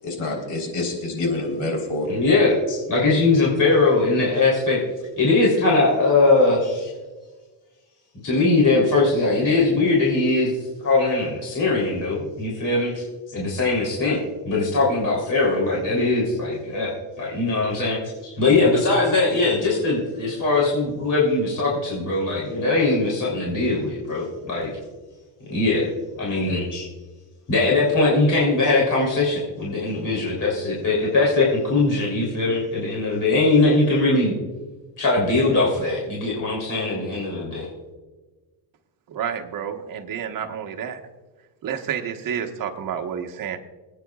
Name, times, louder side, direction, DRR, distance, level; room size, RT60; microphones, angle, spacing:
voice 1, 0.0-2.1, left 2 dB, 75° left, 2 dB, 4.1 m, -27 dB
voice 2, 2.1-4.8 5.2-6.9 8.2-10.5 10.8-16.9 17.2-24.7 25.5-25.9 26.2-26.9 27.5-34.3 35.0-37.7, left 3 dB, 40° left, -3 dB, 3.5 m, -21 dB
voice 3, 39.1-41.0 41.6-43.6, right 8 dB, 45° right, 4 dB, 1.3 m, -29 dB
26.0 x 9.3 x 2.4 m, 1.3 s
cardioid pair, 130°, 46 cm